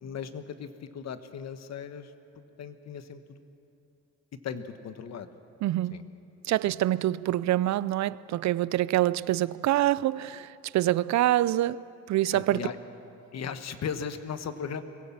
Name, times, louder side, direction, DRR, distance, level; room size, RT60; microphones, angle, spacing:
voice 1, 0.0-2.1 2.6-3.4 4.4-5.3 5.9-6.0 6.6-6.7 12.3-12.8 13.3-14.8, left 7 dB, 60° left, 1.3 m, -37 dB
voice 2, 5.6-6.0 6.4-12.6, right 14 dB, 65° right, 0.5 m, -26 dB
23.0 x 17.0 x 7.3 m
cardioid pair, 90°, 30 cm